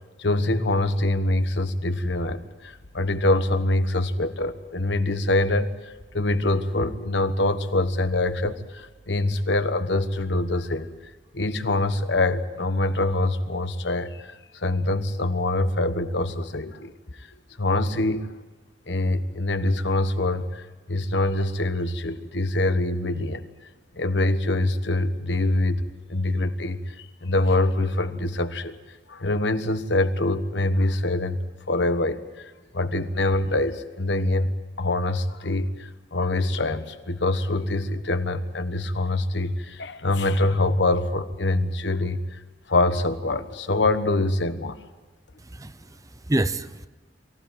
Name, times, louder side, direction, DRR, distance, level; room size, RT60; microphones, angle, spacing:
voice 1, 0.2-10.9 11.3-16.9 17.2-17.3 17.6-18.3 18.9-23.4 23.9-25.8 26.1-28.8 29.1-42.4 42.7-44.8, left 2 dB, 80° left, 10 dB, 1.3 m, -24 dB
voice 2, 45.4-46.9, right 1 dB, 20° right, 13 dB, 0.7 m, -28 dB
23.5 x 15.5 x 9.1 m, 1.2 s
head